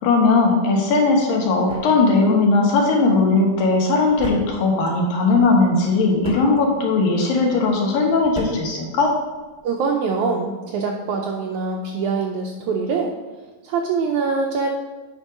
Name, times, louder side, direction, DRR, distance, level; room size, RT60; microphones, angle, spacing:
voice 1, 0.0-9.2, left 3 dB, 80° left, 0 dB, 3.0 m, -18 dB
sound 1, 0.9-9.7, right 2 dB, 65° right, 0.4 m, -39 dB
voice 2, 9.6-13.2 13.6-14.7, right 4 dB, 90° right, 1 dB, 1.7 m, -24 dB
8.9 x 4.7 x 5.1 m, 1.3 s
omnidirectional pair, 4.1 m